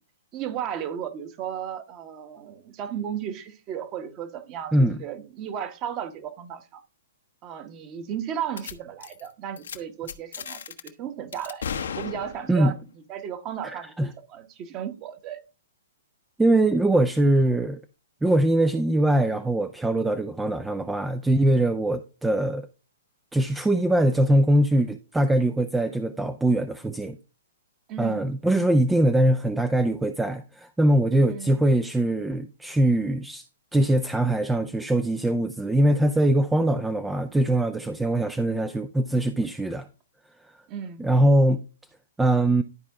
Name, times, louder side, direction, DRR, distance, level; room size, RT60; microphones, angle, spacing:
voice 1, 0.3-6.8 7.4-11.6 11.9-12.8 13.1-15.4 27.9-28.3 31.3-31.6 40.7-41.1, right 9 dB, 30° right, 1.3 m, -34 dB
voice 2, 4.7-5.0 12.5-12.7 13.6-14.1 16.4-17.8 18.2-22.7 23.3-27.2 28.0-33.4 33.7-39.9 40.4-40.5 41.0-41.6 42.2-42.6, right 1 dB, 5° right, 0.5 m, -22 dB
sound 1, 8.6-8.7 9.0-9.3 9.6-9.8 10.1-10.9 11.3-12.7, left 7 dB, 65° left, 1.0 m, -35 dB
12.0 x 4.6 x 3.6 m
figure-of-eight pair, 120°, 0 cm